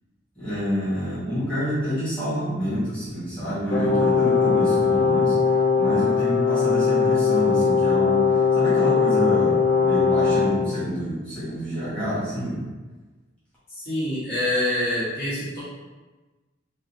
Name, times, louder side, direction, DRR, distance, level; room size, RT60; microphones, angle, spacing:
voice 1, 0.4-5.5 5.8-12.7, equal, 5° left, -13 dB, 1.3 m, -27 dB
Brass instrument, 3.7-10.6, left 5 dB, 80° left, 0.7 m, -20 dB
voice 2, 13.8-15.6, left 1 dB, 55° left, -10 dB, 1.4 m, -25 dB
3.7 x 2.3 x 2.8 m, 1.2 s
head